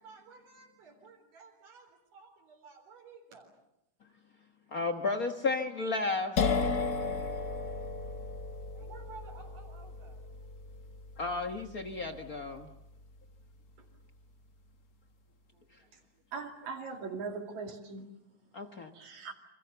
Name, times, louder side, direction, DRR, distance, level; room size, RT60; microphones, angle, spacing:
voice 1, 0.0-3.5 8.7-10.3 13.8-13.9 15.5-16.2, right 4 dB, 90° right, 0 dB, 5.5 m, -54 dB
voice 2, 4.7-6.5 11.2-12.7 18.5-18.9, left 3 dB, 60° left, 6 dB, 0.9 m, -33 dB
sound 1, 6.4-13.9, left 4 dB, 40° left, 1.5 m, -35 dB
voice 3, 16.3-18.1 18.9-19.3, right 4 dB, 65° right, 4 dB, 3.8 m, -40 dB
29.5 x 26.0 x 6.9 m, 0.84 s
omnidirectional pair, 3.6 m